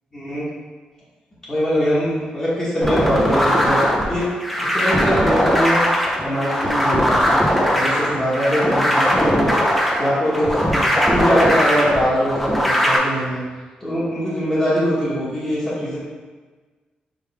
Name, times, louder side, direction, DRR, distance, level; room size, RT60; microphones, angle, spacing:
voice 1, 0.1-0.5 1.5-4.3 4.7-5.9 6.2-7.4 7.7-9.6 10.0-13.4 13.8-16.0, equal, 25° left, -10 dB, 1.3 m, -22 dB
sound 1, 2.8-13.0, equal, 5° left, 0.7 m, -19 dB
4.9 x 3.1 x 3.4 m, 1.4 s
cardioid pair, 120°, 3 cm